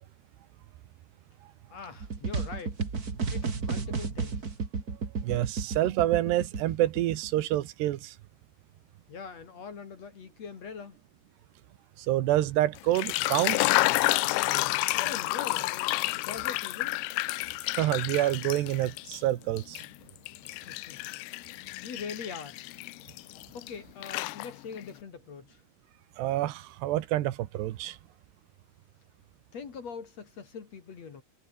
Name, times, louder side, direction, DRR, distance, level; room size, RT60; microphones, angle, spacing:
voice 1, 1.7-2.8 3.3-4.5 9.1-11.0 14.9-17.0 20.7-21.0 21.8-22.6 23.5-25.6 29.5-31.2, left 5 dB, 45° left, 3.1 m, -42 dB
sound 1, 2.0-7.7, right 4 dB, 30° right, 2.2 m, -32 dB
voice 2, 5.2-8.1 12.0-13.6 17.8-19.8 26.2-28.0, right 14 dB, 80° right, 3.3 m, -27 dB
sound 2, 12.8-19.2 19.6-23.7 24.0-24.8, left 21 dB, 80° left, 2.6 m, -30 dB
omnidirectional pair, 4.8 m